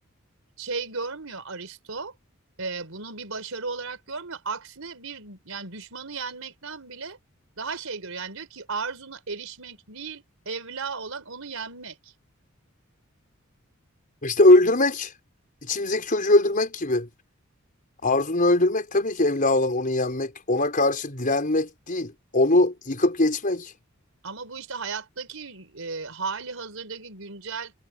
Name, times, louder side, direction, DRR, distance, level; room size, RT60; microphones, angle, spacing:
voice 1, 0.6-2.1 2.6-7.2 7.6-12.1 24.2-27.7, right 4 dB, 80° right, 4.3 m, -35 dB
voice 2, 14.2-15.1 15.6-17.1 18.0-23.7, left 2 dB, 40° left, 5.1 m, -21 dB
head